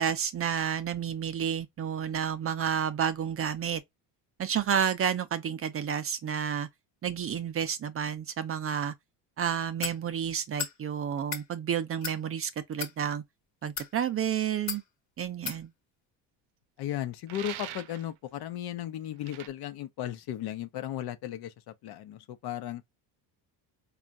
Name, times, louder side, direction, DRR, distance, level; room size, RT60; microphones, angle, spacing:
voice 1, 0.0-3.8 4.4-6.7 7.0-8.9 9.4-13.2 13.6-14.8 15.2-15.7, right 8 dB, 30° right, 0.5 m, -30 dB
sound 1, 9.8-10.0 10.6-10.8 11.2-11.5 12.0-12.2 12.7-12.9 13.6-13.9 14.7-14.8 15.5-15.6, left 7 dB, 40° left, 1.1 m, -35 dB
voice 2, 16.8-22.8, left 12 dB, 60° left, 0.8 m, -36 dB
sound 2, 17.3-18.1 19.2-19.5, right 12 dB, 75° right, 0.6 m, -41 dB
4.2 x 2.4 x 2.4 m
cardioid pair, 105°, 44 cm